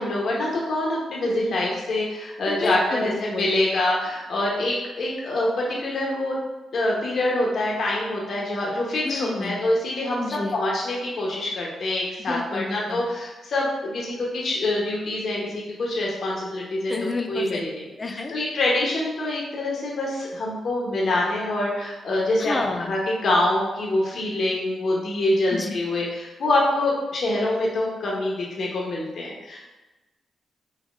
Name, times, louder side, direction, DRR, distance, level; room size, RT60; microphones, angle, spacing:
voice 1, 0.0-6.4 6.7-10.2 10.5-16.9 17.3-22.5 22.8-29.6, left 1 dB, 65° left, -3 dB, 0.8 m, -25 dB
voice 2, 2.5-3.5 9.0-9.6 10.2-10.6 12.3-13.0 16.9-17.6 18.0-18.3 22.4-22.9 25.5-25.7, left 3 dB, 35° left, 4 dB, 0.6 m, -30 dB
5.4 x 2.9 x 2.4 m, 1.1 s
supercardioid pair, 50°, 0 cm